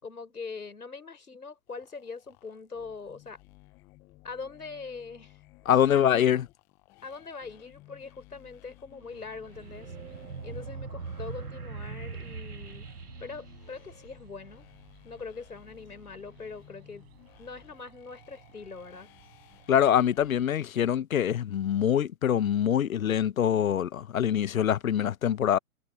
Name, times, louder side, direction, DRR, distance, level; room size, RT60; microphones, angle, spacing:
voice 1, 0.0-3.4 4.2-6.2 7.0-9.9 10.4-12.9 13.2-14.7 15.0-17.0 17.4-19.1, left 4 dB, 80° left, 6.0 m, -42 dB
sound 1, 1.7-20.6, left 20 dB, 5° left, 0.4 m, -56 dB
voice 2, 5.7-6.4 19.7-25.6, left 9 dB, 65° left, 0.8 m, -24 dB
sound 2, 8.9-20.3, right 16 dB, 40° right, 7.3 m, -59 dB
sound 3, 9.5-14.5, right 5 dB, 80° right, 2.0 m, -41 dB
figure-of-eight pair, 125°, 45 cm